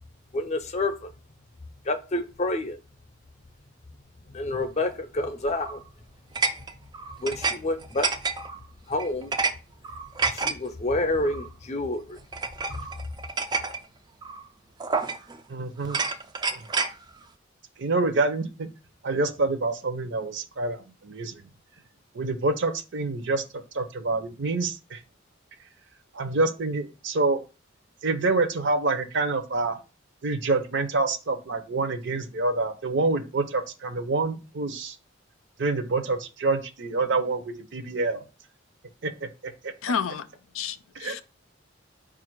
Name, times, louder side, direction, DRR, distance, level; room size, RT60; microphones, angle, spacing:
voice 1, 0.3-1.1 1.8-2.8 4.3-5.8 7.2-8.1 8.9-9.3 10.3-12.2 12.7-12.9, left 2 dB, 35° left, 0.5 m, -28 dB
sound 1, 5.5-5.8 6.4-7.6 7.8-8.6 9.0-9.5 9.8-10.5 11.3-11.5 12.3-13.8 14.2-14.4 14.8-15.4 15.8-16.9, right 4 dB, 20° right, 0.3 m, -29 dB
voice 2, 15.5-16.0 16.5-16.6 17.8-18.7 19.0-21.4 22.1-25.0 26.1-27.4 28.0-29.8 30.2-35.0 35.6-38.2 39.0-39.7 40.9-41.2, right 3 dB, 60° right, 0.6 m, -27 dB
voice 3, 39.8-40.3 40.5-41.2, left 6 dB, 85° left, 0.4 m, -30 dB
4.7 x 2.5 x 4.5 m
head